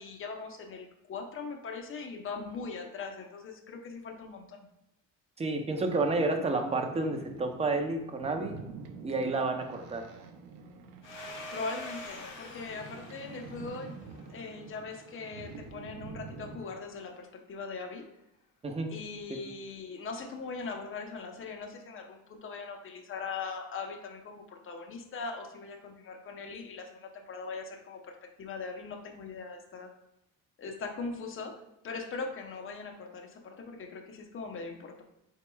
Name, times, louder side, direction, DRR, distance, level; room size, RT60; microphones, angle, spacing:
voice 1, 0.0-4.7 11.5-14.0 14.3-18.0 18.9-29.9 30.6-31.6 31.8-35.0, left 4 dB, 35° left, 3 dB, 0.7 m, -40 dB
voice 2, 5.4-8.6 9.0-10.1 18.6-18.9, right 3 dB, 15° right, 4 dB, 0.6 m, -30 dB
Boat Water vehicle, 5.7-16.6, right 5 dB, 90° right, 0.6 m, -48 dB
Domestic sounds home sounds, 11.0-15.4, left 1 dB, 65° left, 1.5 m, -46 dB
4.6 x 4.0 x 2.3 m, 0.88 s
cardioid pair, 95°, 35 cm